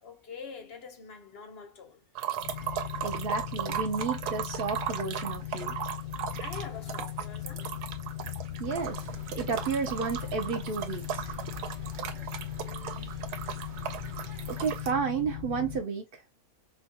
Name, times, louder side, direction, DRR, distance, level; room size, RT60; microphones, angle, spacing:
voice 1, 0.0-2.0 2.5-3.0 5.6-5.7 6.4-7.8 12.6-13.3, left 5 dB, 50° left, 0.8 m, -46 dB
sound 1, 2.1-14.9, right 9 dB, 85° right, 1.2 m, -37 dB
sound 2, 2.4-15.8, left 12 dB, 85° left, 1.5 m, -39 dB
voice 2, 3.0-5.7 8.6-9.1 9.3-11.3 14.5-16.2, right 5 dB, 65° right, 0.5 m, -32 dB
sound 3, 8.6-14.7, right 2 dB, 50° right, 1.2 m, -48 dB
4.2 x 2.3 x 2.7 m
omnidirectional pair, 1.7 m